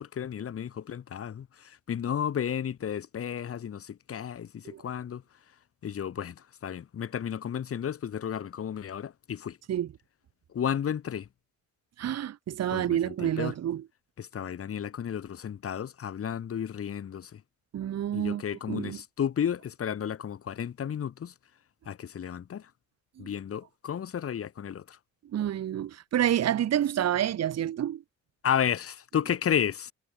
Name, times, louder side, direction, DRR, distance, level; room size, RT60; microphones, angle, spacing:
voice 1, 0.0-5.2 5.8-9.6 10.5-11.3 12.7-13.5 14.2-17.4 18.1-21.3 21.9-22.7 23.2-25.0 28.4-29.9, left 8 dB, 50° left, 1.7 m, -32 dB
voice 2, 12.0-13.8 17.7-18.4 18.7-19.0 23.2-23.3 25.3-28.0, right 11 dB, 55° right, 1.3 m, -28 dB
cardioid pair, 90°, 30 cm